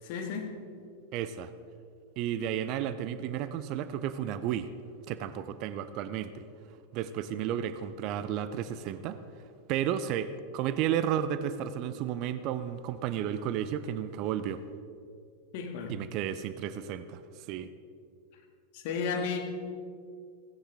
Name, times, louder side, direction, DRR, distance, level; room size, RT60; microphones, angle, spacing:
voice 1, 0.0-0.6 15.5-15.9 18.7-19.4, left 5 dB, 50° left, 3 dB, 2.0 m, -33 dB
voice 2, 1.1-1.5 2.2-4.7 5.1-6.5 6.9-9.2 9.7-14.6 15.9-17.2 17.5-17.7, right 10 dB, 40° right, 13 dB, 0.7 m, -32 dB
16.5 x 16.5 x 3.6 m, 2.3 s
figure-of-eight pair, 90°, 0 cm